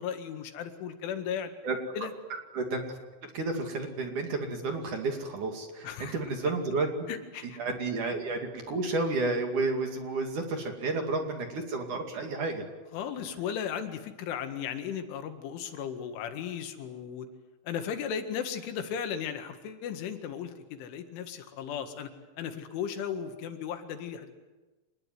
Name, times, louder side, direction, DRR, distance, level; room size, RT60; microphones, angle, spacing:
voice 1, 0.0-1.5 2.0-2.1 5.8-6.1 7.1-7.6 12.9-17.3 17.7-22.1 22.4-24.3, left 8 dB, 85° left, 7 dB, 4.3 m, -36 dB
voice 2, 3.3-7.1 7.6-12.6, right 3 dB, 50° right, 4 dB, 3.5 m, -31 dB
26.0 x 21.0 x 9.5 m, 1.2 s
omnidirectional pair, 5.4 m